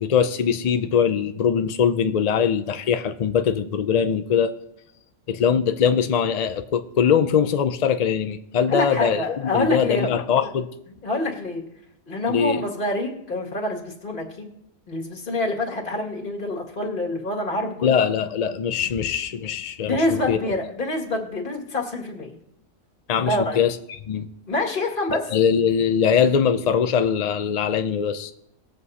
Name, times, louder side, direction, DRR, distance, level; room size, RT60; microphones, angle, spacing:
voice 1, 0.0-4.5 5.3-10.7 12.3-12.6 17.8-20.0 20.3-20.4 23.1-23.7 24.1-24.3 25.1-28.3, left 7 dB, 75° left, 9 dB, 0.3 m, -22 dB
voice 2, 8.7-10.1 11.0-11.6 12.1-14.5 14.9-18.0 19.9-22.4 23.2-23.6 24.5-25.3, left 2 dB, 40° left, -1 dB, 2.2 m, -26 dB
21.0 x 7.6 x 2.8 m, 0.78 s
omnidirectional pair, 1.4 m